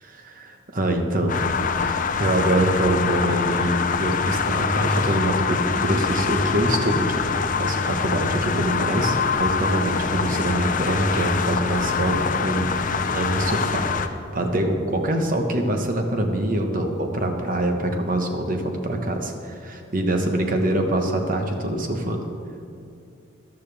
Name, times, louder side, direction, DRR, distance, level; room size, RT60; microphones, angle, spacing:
voice 1, 0.0-1.4 1.7-7.1 7.6-12.8 13.1-22.2, right 1 dB, 45° right, 4 dB, 1.2 m, -24 dB
sound 1, 1.3-14.1, left 5 dB, 45° left, 0.5 m, -24 dB
14.0 x 11.5 x 3.5 m, 2.5 s
head